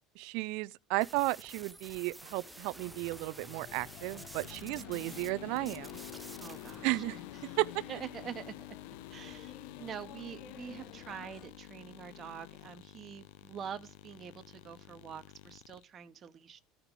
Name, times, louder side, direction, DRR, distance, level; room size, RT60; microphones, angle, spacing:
voice 1, 0.2-6.0 6.8-7.2 7.6-7.8 9.3-9.4, right 21 dB, 70° right, 0.4 m, -34 dB
sound 1, 1.0-5.3 5.6-6.8, right 2 dB, 10° right, 0.5 m, -50 dB
sound 2, 2.2-11.5, left 8 dB, 60° left, 1.4 m, -53 dB
sound 3, 3.7-15.8, left 15 dB, 75° left, 0.5 m, -49 dB
voice 2, 4.7-5.0 6.4-7.0 7.4-7.6 7.9-8.5 9.1-16.6, right 8 dB, 40° right, 1.0 m, -45 dB
14.5 x 4.9 x 3.7 m
supercardioid pair, 90°, 0 cm